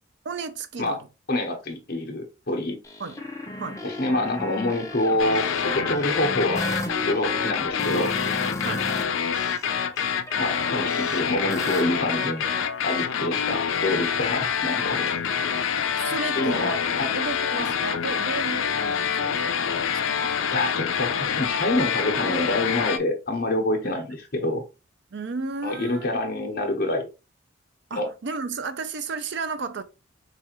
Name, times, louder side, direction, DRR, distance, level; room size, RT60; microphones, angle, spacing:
voice 1, 0.2-1.1 3.0-3.2 3.6-3.8 8.6-8.9 13.3-13.5 16.0-20.4 23.8-24.0 25.1-26.1 27.9-29.8, right 4 dB, 60° right, 0.5 m, -33 dB
voice 2, 1.3-2.8 3.8-6.6 7.1-8.1 10.4-12.5 12.8-15.2 16.4-17.1 20.5-24.6 25.6-27.1 27.9-28.1, left 1 dB, 50° left, 1.0 m, -27 dB
sound 1, 2.8-9.0 9.3-12.6, left 1 dB, 15° left, 0.6 m, -35 dB
sound 2, 5.2-23.0, left 7 dB, 75° left, 0.5 m, -26 dB
4.7 x 2.5 x 2.9 m
head